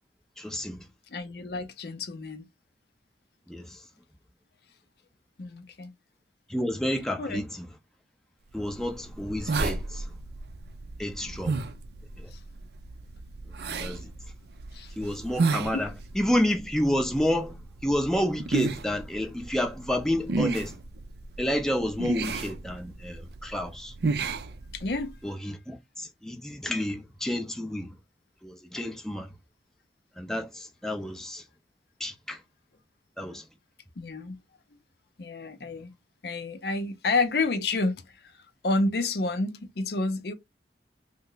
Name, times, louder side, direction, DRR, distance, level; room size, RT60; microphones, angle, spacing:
voice 1, 0.4-0.8 3.5-3.8 6.5-7.7 8.5-10.1 11.0-11.6 12.2-12.3 13.8-14.1 15.0-17.6 17.8-20.8 21.4-23.9 25.2-27.9 28.4-29.3 30.2-31.4 32.0-32.4 33.2-33.4, left 1 dB, 5° left, 0.5 m, -30 dB
voice 2, 1.1-2.5 5.4-5.9 7.2-7.4 12.3-12.4 13.7-14.1 14.7-14.9 15.7-15.9 24.7-25.2 34.0-34.4 35.2-35.9 36.2-38.0 38.3-40.3, left 3 dB, 65° left, 0.5 m, -30 dB
sound 1, 8.6-25.2, right 4 dB, 65° right, 0.4 m, -33 dB
3.2 x 2.0 x 3.8 m
head